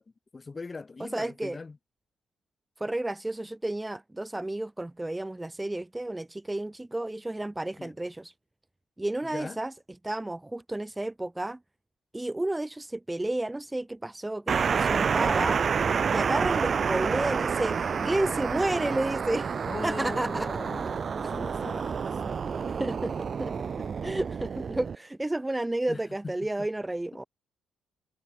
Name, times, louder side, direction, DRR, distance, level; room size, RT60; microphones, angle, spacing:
voice 1, 0.3-1.8 7.8-7.9 9.2-9.6 19.7-22.4 25.9-26.0 26.6-26.7, left 4 dB, 30° left, 8.0 m, -40 dB
voice 2, 1.0-1.6 2.8-8.3 9.0-9.7 10.0-11.6 12.1-15.6 16.1-19.6 19.8-20.5 20.8-20.9 22.7-23.5 24.0-27.2, right 1 dB, 10° right, 4.3 m, -31 dB
sound 1, 14.5-25.0, right 6 dB, 45° right, 2.4 m, -29 dB
cardioid pair, 90°, 0 cm